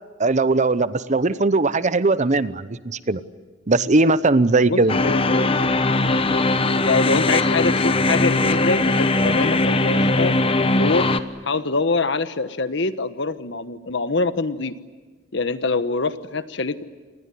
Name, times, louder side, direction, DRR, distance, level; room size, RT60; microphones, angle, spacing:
voice 1, 0.2-3.2 3.7-4.9, right 3 dB, 40° right, 15 dB, 0.8 m, -19 dB
voice 2, 4.7-5.5 6.8-10.3 10.7-11.1 11.4-14.7 15.3-16.8, left 3 dB, 65° left, 12 dB, 1.2 m, -24 dB
sound 1, 4.9-11.2, left 2 dB, 30° left, 1.1 m, -20 dB
27.5 x 20.5 x 9.7 m, 1.3 s
head